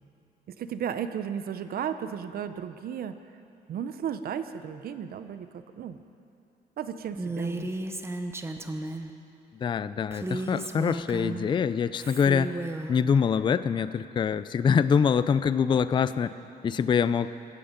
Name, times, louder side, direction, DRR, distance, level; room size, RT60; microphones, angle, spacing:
voice 1, 0.5-3.2 3.7-6.0 6.8-7.7, right 8 dB, 60° right, 10 dB, 0.7 m, -34 dB
Female speech woman speaking, 7.2-9.1 10.1-11.5 12.0-12.9, right 2 dB, 15° right, 0.8 m, -34 dB
voice 2, 9.6-12.5 12.9-16.4 16.6-17.3, left 6 dB, 30° left, 14 dB, 0.4 m, -24 dB
16.5 x 13.5 x 5.2 m, 2.7 s
cardioid pair, 125°, 17 cm